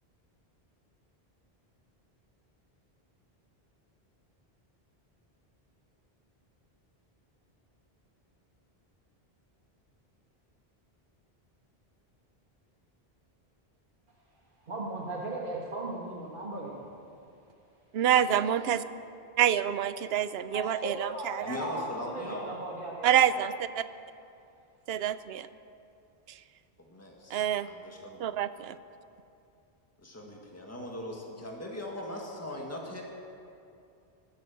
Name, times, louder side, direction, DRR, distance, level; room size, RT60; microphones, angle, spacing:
voice 1, 14.7-16.9 18.4-18.8 20.5-23.4, right 1 dB, 55° right, -4 dB, 1.9 m, -37 dB
voice 2, 17.9-18.8 19.4-21.6 23.0-23.8 24.9-25.5 27.3-27.7 28.2-28.8, right 10 dB, 80° right, 14 dB, 0.8 m, -27 dB
voice 3, 21.4-22.6 26.8-28.2 30.0-33.0, left 1 dB, 15° left, -1 dB, 1.8 m, -40 dB
20.0 x 8.5 x 7.8 m, 2.6 s
omnidirectional pair, 1.0 m